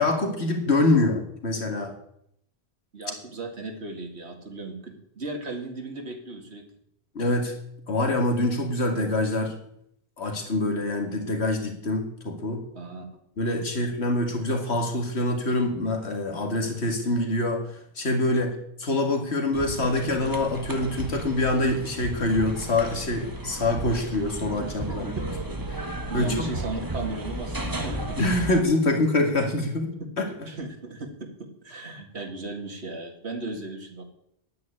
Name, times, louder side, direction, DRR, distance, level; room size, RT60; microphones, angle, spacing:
voice 1, 0.0-1.9 7.1-7.5 7.9-9.6 10.2-12.7 13.4-25.1 25.7-26.4 28.1-30.2, left 2 dB, 85° left, 4 dB, 2.3 m, -25 dB
voice 2, 2.9-6.7 12.7-13.1 24.6-24.7 26.1-28.2 30.5-34.0, right 2 dB, 85° right, 4 dB, 2.5 m, -36 dB
sound 1, 19.5-28.6, right 2 dB, 20° right, 1.3 m, -34 dB
9.5 x 9.4 x 9.9 m, 0.72 s
omnidirectional pair, 1.1 m